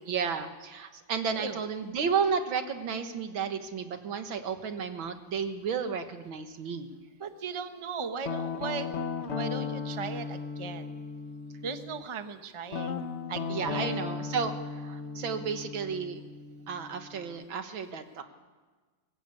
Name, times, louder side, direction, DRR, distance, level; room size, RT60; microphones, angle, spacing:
voice 1, 0.1-6.9 13.5-16.2 16.7-18.2, right 6 dB, 80° right, 8 dB, 2.2 m, -32 dB
voice 2, 7.2-10.8 11.6-13.0 13.3-14.0, right 5 dB, 20° right, 8 dB, 0.8 m, -37 dB
Guitar, 8.2-12.0 12.7-17.4, left 5 dB, 40° left, 1.1 m, -36 dB
23.0 x 18.5 x 8.4 m, 1.4 s
omnidirectional pair, 2.1 m